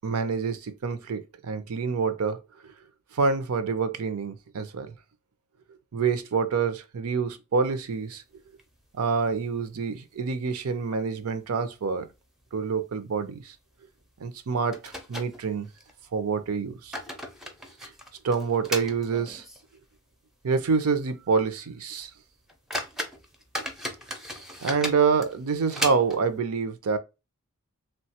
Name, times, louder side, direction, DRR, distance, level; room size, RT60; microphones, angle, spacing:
voice 1, 0.0-2.4 3.1-4.9 5.9-8.2 9.0-12.1 12.5-13.5 14.2-15.7 16.1-17.0 17.8-17.9 18.2-19.4 20.4-22.1 24.6-27.0, right 5 dB, 80° right, 0.5 m, -27 dB
sound 1, 8.0-9.0 9.3-9.4 9.7-9.8 10.4-10.9 11.2-11.4 12.0-12.2 12.5-12.6 14.0-14.1 14.7-15.9 16.6-19.8 20.1-20.2 20.8-20.9 21.3-21.5 22.0-22.1 22.5-26.4, equal, ahead, 0.5 m, -36 dB
3.1 x 2.2 x 2.7 m
head